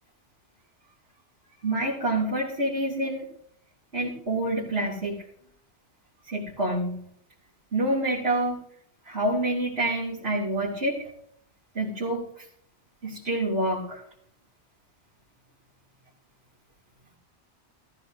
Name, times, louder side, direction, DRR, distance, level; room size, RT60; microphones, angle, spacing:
voice 1, 1.6-3.3 3.9-5.2 6.2-7.0 7.7-8.6 9.0-11.1 11.7-12.5 13.0-14.0, right 1 dB, 60° right, -5 dB, 3.2 m, -27 dB
17.0 x 14.5 x 2.7 m, 0.66 s
omnidirectional pair, 1.2 m